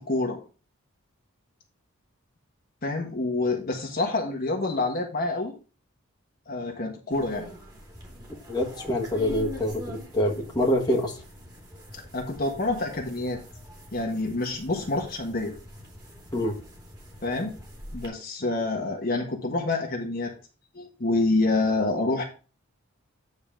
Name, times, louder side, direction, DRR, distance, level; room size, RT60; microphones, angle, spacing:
voice 1, 0.1-0.4 2.8-5.5 6.5-7.5 11.9-13.4 13.9-15.5 17.2-17.6 17.9-20.3 20.7-22.2, left 2 dB, 40° left, 1 dB, 1.3 m, -27 dB
sound 1, 7.1-18.1, left 1 dB, 20° right, 2.7 m, -44 dB
voice 2, 8.5-11.1 16.3-16.6, left 1 dB, 20° left, -1 dB, 1.6 m, -26 dB
9.3 x 4.2 x 5.0 m, 0.35 s
head